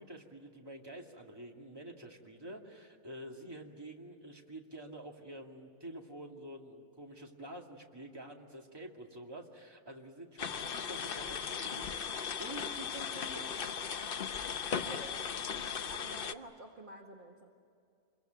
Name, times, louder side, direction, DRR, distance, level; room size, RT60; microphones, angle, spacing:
voice 1, 0.0-11.9 12.4-13.7, right 1 dB, 15° right, 1 dB, 2.3 m, -48 dB
sound 1, 10.4-16.3, left 7 dB, 50° left, 0.7 m, -37 dB
voice 2, 14.7-15.3 15.9-17.5, right 2 dB, 35° right, 0 dB, 1.8 m, -49 dB
27.0 x 22.5 x 9.2 m, 2.5 s
omnidirectional pair, 1.7 m